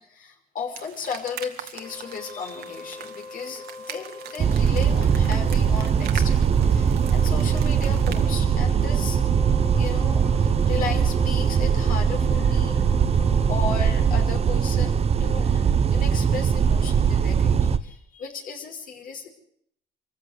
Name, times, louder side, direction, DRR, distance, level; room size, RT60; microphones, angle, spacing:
voice 1, 0.0-9.2 9.8-12.8 13.2-13.3 13.5-19.3, left 5 dB, 55° left, 3 dB, 5.3 m, -35 dB
sound 1, 0.7-8.2, right 10 dB, 70° right, 2.4 m, -42 dB
Wind instrument woodwind instrument, 1.7-15.1, left 3 dB, 40° left, 4.4 m, -42 dB
sound 2, 4.4-17.8, right 7 dB, 40° right, 1.2 m, -21 dB
25.0 x 15.0 x 8.2 m, 0.69 s
cardioid pair, 110°, 17 cm